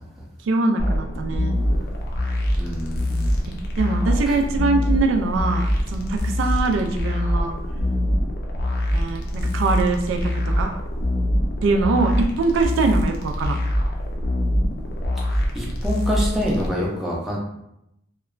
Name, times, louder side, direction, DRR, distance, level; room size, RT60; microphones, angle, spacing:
voice 1, 0.4-1.6 3.5-7.5 8.9-10.3 10.6-10.8 11.6-13.6, right 3 dB, 80° right, 4 dB, 0.3 m, -23 dB
sound 1, 0.8-16.7, left 1 dB, 50° left, 0.5 m, -24 dB
voice 2, 2.6-3.4 4.3-4.4 15.5-17.4, equal, ahead, -5 dB, 0.5 m, -26 dB
2.8 x 2.2 x 2.4 m, 0.80 s
head